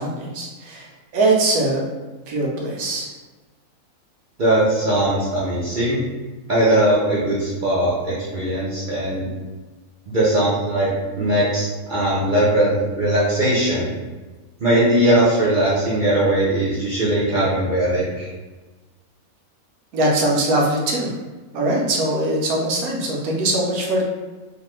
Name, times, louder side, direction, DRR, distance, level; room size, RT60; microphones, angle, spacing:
voice 1, 0.0-1.8 2.3-3.1 19.9-21.2 21.5-24.0, right 2 dB, 75° right, -2 dB, 1.1 m, -21 dB
voice 2, 4.4-6.0 6.5-9.3 10.1-10.9 11.2-13.9 14.6-18.3, right 1 dB, 55° right, -8 dB, 0.5 m, -19 dB
3.0 x 2.1 x 3.1 m, 1.2 s
omnidirectional pair, 1.6 m